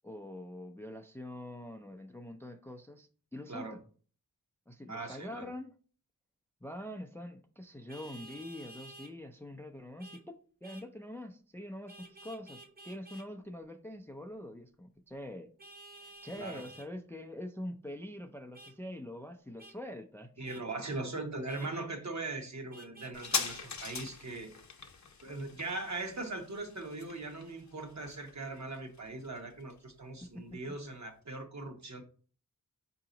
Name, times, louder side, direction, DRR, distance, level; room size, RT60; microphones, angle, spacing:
voice 1, 0.0-3.8 4.7-5.7 6.6-15.5 16.0-20.4 30.3-30.6, left 1 dB, 5° left, 4 dB, 0.4 m, -44 dB
voice 2, 4.9-5.5 16.4-16.6 20.4-24.5 25.2-32.0, right 2 dB, 50° right, 4 dB, 1.1 m, -40 dB
Vehicle horn car horn honking, 7.9-9.1 10.0-10.2 10.6-10.9 11.9-13.3 15.6-16.9 18.5-18.7 19.6-19.8 20.4-20.6 21.5-21.7 22.7-23.6, right 2 dB, 25° right, 0.7 m, -52 dB
sound 1, 23.1-30.2 30.5-30.6, left 5 dB, 50° left, 0.7 m, -41 dB
4.8 x 2.8 x 3.8 m, 0.41 s
wide cardioid pair, 75°, 36 cm